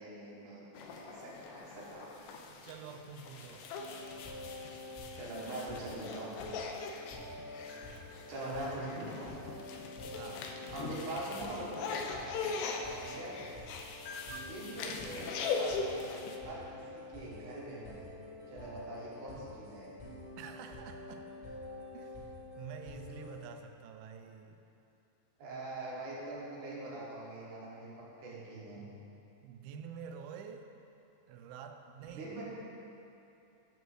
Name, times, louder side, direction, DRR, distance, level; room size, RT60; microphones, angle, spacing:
voice 1, 0.0-2.1 5.1-6.4 8.3-9.3 10.7-12.5 13.0-13.4 14.3-18.1 18.5-19.9 25.4-27.9 28.2-28.8 32.1-32.4, right 2 dB, 65° right, -5 dB, 2.5 m, -43 dB
sound 1, 0.8-16.4, left 4 dB, 80° left, 1.9 m, -41 dB
voice 2, 2.5-3.7 10.1-10.6 20.4-21.3 21.9-24.6 28.8-28.9 29.4-30.7 31.3-32.4, right 7 dB, 85° right, 6 dB, 2.4 m, -48 dB
sound 2, 3.7-23.5, left 2 dB, 35° left, 1.0 m, -48 dB
12.0 x 6.1 x 3.1 m, 2.8 s
omnidirectional pair, 4.3 m